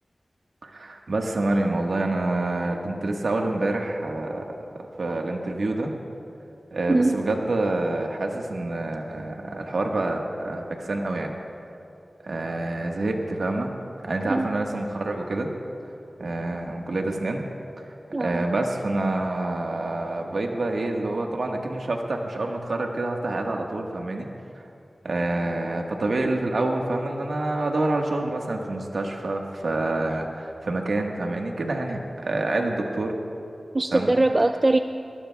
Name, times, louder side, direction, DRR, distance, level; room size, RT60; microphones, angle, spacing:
voice 1, 0.6-5.9 6.7-11.3 12.2-13.7 14.0-15.5 16.2-17.4 18.2-24.3 25.0-33.1 33.9-34.1, right 2 dB, 80° right, 1 dB, 1.4 m, -27 dB
voice 2, 18.1-18.4 33.7-34.8, right 2 dB, 40° right, 8 dB, 0.4 m, -21 dB
20.5 x 18.5 x 2.3 m, 2.7 s
wide cardioid pair, 60°, 0 cm